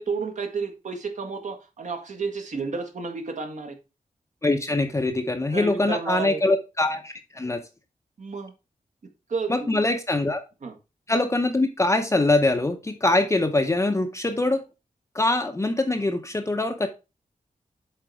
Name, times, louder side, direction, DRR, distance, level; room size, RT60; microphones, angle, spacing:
voice 1, 0.0-3.8 5.5-6.4 8.2-8.5 9.3-9.8 10.6-10.7, right 4 dB, 60° right, 5 dB, 1.6 m, -31 dB
voice 2, 4.4-7.6 9.5-10.4 11.1-14.6 15.1-16.9, left 2 dB, 20° left, 5 dB, 0.7 m, -23 dB
7.6 x 4.1 x 4.7 m, 0.28 s
wide cardioid pair, 155°, 14 cm